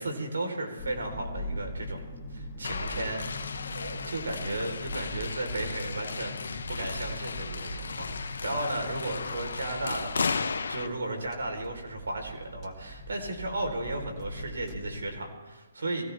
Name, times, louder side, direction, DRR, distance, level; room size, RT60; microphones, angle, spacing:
voice 1, 0.0-2.0 2.3-3.4 3.7-10.4 10.7-16.0, right 2 dB, 85° right, 3 dB, 4.2 m, -34 dB
sound 1, 0.8-15.2, left 1 dB, 20° left, 2.1 m, -41 dB
sound 2, 2.6-10.9, left 5 dB, 75° left, 1.0 m, -35 dB
23.0 x 16.5 x 3.6 m, 1.2 s
hypercardioid pair, 150°, 0 cm